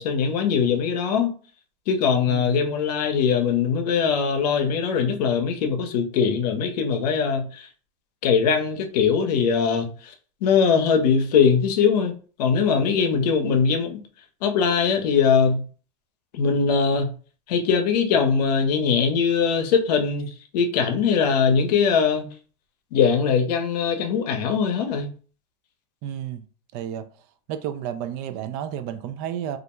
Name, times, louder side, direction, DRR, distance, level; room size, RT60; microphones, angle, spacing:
voice 1, 0.0-1.3 1.9-7.7 8.2-10.1 10.4-14.0 14.4-15.6 16.3-17.1 17.5-22.3 22.9-25.1, left 6 dB, 85° left, 0.6 m, -21 dB
voice 2, 2.3-2.7 26.0-26.5 26.7-27.1 27.5-29.6, right 10 dB, 55° right, 0.4 m, -31 dB
2.4 x 2.1 x 2.9 m
supercardioid pair, 115°, 20 cm